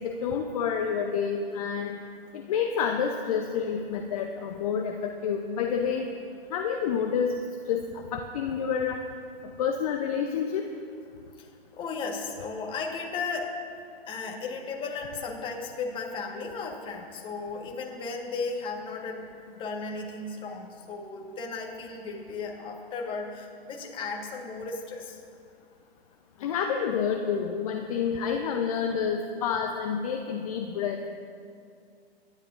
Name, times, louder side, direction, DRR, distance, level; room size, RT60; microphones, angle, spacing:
voice 1, 0.0-1.9 2.5-6.1 6.5-7.4 7.7-9.0 9.6-10.7 26.4-31.1, left 7 dB, 35° left, 4 dB, 0.8 m, -28 dB
voice 2, 11.4-13.5 14.0-25.2, left 4 dB, 15° left, 1 dB, 1.5 m, -35 dB
24.5 x 11.5 x 2.6 m, 2.3 s
figure-of-eight pair, 125°, 31 cm